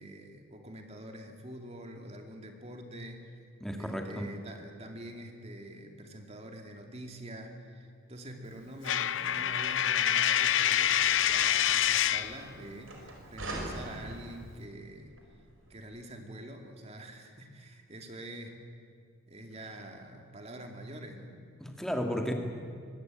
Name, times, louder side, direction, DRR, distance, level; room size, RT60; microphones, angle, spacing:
voice 1, 0.0-3.3 3.8-15.1 15.7-18.6 19.3-21.4, right 1 dB, 30° right, 4 dB, 2.6 m, -46 dB
voice 2, 3.6-4.3 21.6-22.3, equal, ahead, 3 dB, 2.1 m, -33 dB
Coin (dropping), 8.8-12.4, left 10 dB, 60° left, 0.6 m, -26 dB
sound 1, 9.2-15.8, right 1 dB, 70° right, 4.8 m, -45 dB
24.0 x 18.5 x 9.1 m, 2.1 s
head